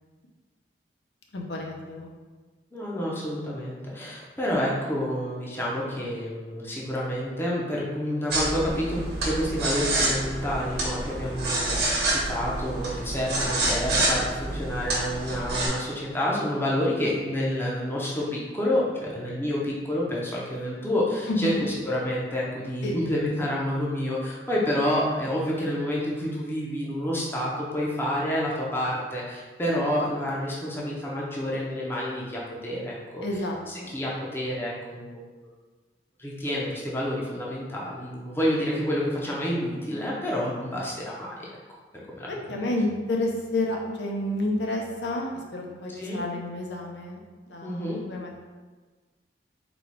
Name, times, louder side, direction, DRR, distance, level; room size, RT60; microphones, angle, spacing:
voice 1, 1.3-2.1 21.3-21.6 22.8-23.0 33.2-33.9 42.3-48.4, left 1 dB, 70° left, 0 dB, 0.7 m, -30 dB
voice 2, 2.7-21.5 21.8-33.2 33.7-35.2 36.2-41.5 42.2-42.6 45.9-46.2 47.6-48.0, equal, 15° left, -5 dB, 0.6 m, -29 dB
sound 1, 8.3-15.7, right 2 dB, 60° right, 1.2 m, -28 dB
4.1 x 2.3 x 4.5 m, 1.4 s
head